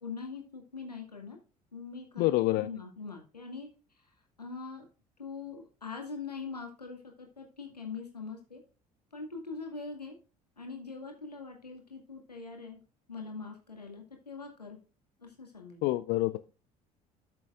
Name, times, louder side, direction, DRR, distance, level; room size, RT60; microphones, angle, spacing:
voice 1, 0.0-1.4 1.7-3.7 4.4-4.9 5.2-8.6 9.1-10.2 10.6-12.8 13.1-14.8 15.2-15.8, left 4 dB, 90° left, 2 dB, 2.0 m, -42 dB
voice 2, 2.2-2.7 15.8-16.5, left 18 dB, 55° left, 14 dB, 0.5 m, -27 dB
12.5 x 6.9 x 2.4 m, 0.34 s
figure-of-eight pair, 55°, 20 cm